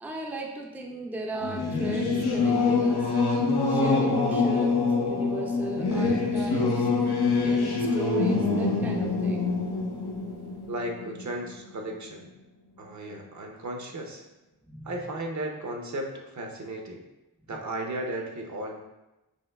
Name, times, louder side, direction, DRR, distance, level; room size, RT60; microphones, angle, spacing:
voice 1, 0.0-3.1 3.7-6.9 7.4-9.6 14.7-14.9, right 2 dB, 5° right, 0 dB, 0.4 m, -36 dB
Singing / Musical instrument, 1.4-11.5, left 3 dB, 80° left, 0.6 m, -25 dB
voice 2, 10.7-12.3 12.8-14.3 14.8-17.0 17.5-18.9, right 1 dB, 50° right, 2 dB, 0.6 m, -35 dB
5.3 x 2.8 x 2.2 m, 1.0 s
wide cardioid pair, 95°, 37 cm